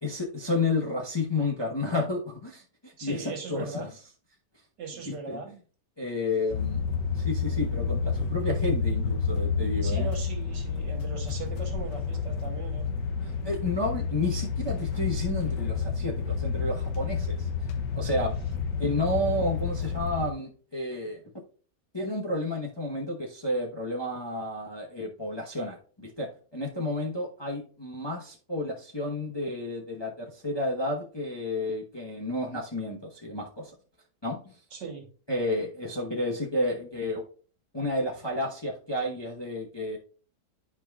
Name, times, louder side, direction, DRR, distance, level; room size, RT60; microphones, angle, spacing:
voice 1, 0.0-3.9 5.0-5.4 6.0-6.8 7.1-10.1 13.2-17.5 17.9-18.4 18.8-21.2 21.9-33.7 34.2-34.5 35.3-37.2 37.7-40.0, left 2 dB, 20° left, -2 dB, 0.9 m, -31 dB
voice 2, 3.0-3.9 4.8-5.5 9.8-12.9 34.7-35.1, right 5 dB, 85° right, 3 dB, 2.0 m, -39 dB
sound 1, 6.5-20.3, left 5 dB, 85° left, 1.4 m, -30 dB
11.0 x 4.8 x 2.4 m, 0.40 s
omnidirectional pair, 1.8 m